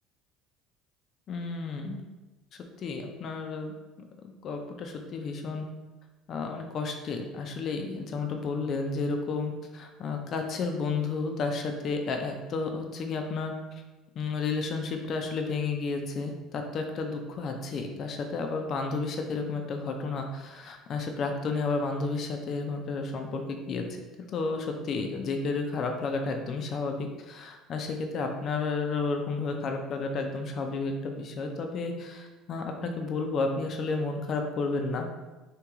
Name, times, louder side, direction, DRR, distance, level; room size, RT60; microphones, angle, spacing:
voice 1, 1.3-2.0 2.8-3.7 4.4-5.7 6.3-13.5 14.2-23.8 24.3-35.1, left 4 dB, 50° left, 4 dB, 0.4 m, -32 dB
3.0 x 2.9 x 3.5 m, 1.1 s
supercardioid pair, 100°, 0 cm